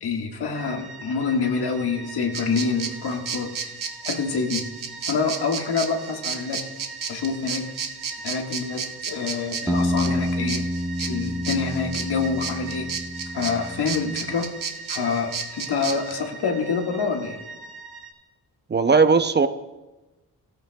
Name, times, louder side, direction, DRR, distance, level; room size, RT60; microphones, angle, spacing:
voice 1, 0.0-3.5 4.0-4.7 5.1-6.6 7.1-7.7 8.2-10.6 11.0-12.9 13.3-14.5 14.9-17.4, left 5 dB, 90° left, 2 dB, 1.7 m, -26 dB
sound 1, 0.5-18.1, right 4 dB, 80° right, 1.8 m, -41 dB
sound 2, 2.3-16.1, right 6 dB, 55° right, 1.1 m, -33 dB
sound 3, 9.7-14.3, equal, 10° right, 1.2 m, -28 dB
voice 2, 18.7-19.5, right 4 dB, 30° right, 10 dB, 0.6 m, -17 dB
17.5 x 13.5 x 2.3 m, 1.1 s
wide cardioid pair, 115°, 38 cm